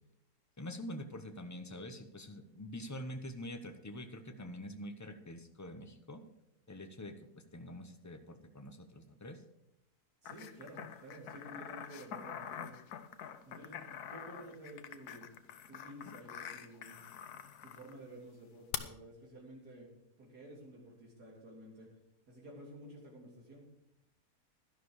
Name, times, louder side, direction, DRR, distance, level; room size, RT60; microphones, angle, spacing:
voice 1, 0.6-6.2 6.7-9.4, left 1 dB, 15° left, 7 dB, 0.6 m, -45 dB
sound 1, 10.2-17.9 18.7-18.8, left 9 dB, 75° left, 1.3 m, -45 dB
voice 2, 10.2-12.7 13.5-15.3 15.7-17.0 17.6-19.9 20.2-21.9 22.3-23.6, right 1 dB, 75° right, -3 dB, 3.8 m, -52 dB
11.5 x 11.5 x 4.9 m, 0.82 s
omnidirectional pair, 1.7 m